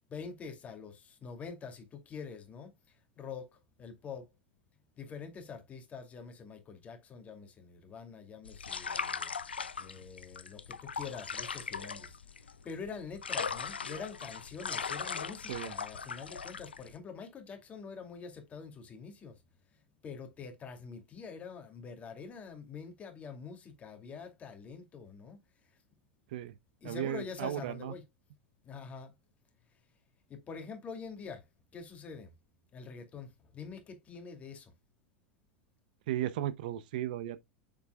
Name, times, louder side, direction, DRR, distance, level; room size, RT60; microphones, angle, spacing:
voice 1, 0.1-4.3 4.9-19.3 20.0-25.4 26.8-28.0 28.6-29.1 30.3-31.5 31.7-32.3 32.7-34.7, left 5 dB, 25° left, 2.5 m, -45 dB
sound 1, 8.4-16.9, left 6 dB, 75° left, 0.6 m, -39 dB
voice 2, 26.8-27.9 36.1-37.4, right 12 dB, 55° right, 0.7 m, -35 dB
7.5 x 6.8 x 2.3 m
figure-of-eight pair, 85°, 6 cm